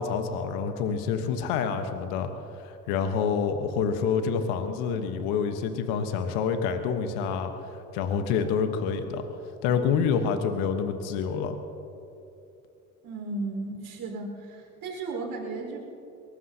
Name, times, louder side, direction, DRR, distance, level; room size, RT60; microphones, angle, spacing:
voice 1, 0.0-2.3 2.6-9.2 9.6-11.6, left 6 dB, 80° left, 7 dB, 1.2 m, -27 dB
voice 2, 13.0-15.8, right 3 dB, 65° right, -1 dB, 4.6 m, -35 dB
22.5 x 19.0 x 2.8 m, 2.8 s
hypercardioid pair, 60°, 39 cm